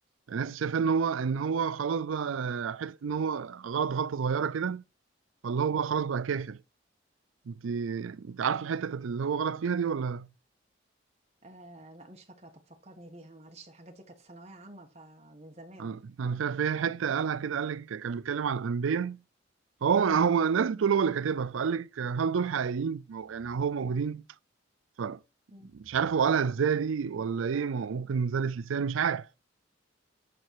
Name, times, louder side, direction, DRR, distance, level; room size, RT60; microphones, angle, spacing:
voice 1, 0.3-4.8 5.4-6.6 7.5-10.3 15.8-19.2 19.8-24.2 25.0-25.2 25.7-29.3, right 6 dB, 90° right, 0.4 m, -29 dB
voice 2, 11.4-15.9 20.0-20.2 25.5-25.7, right 1 dB, 35° right, 1.6 m, -50 dB
11.0 x 4.1 x 4.6 m
head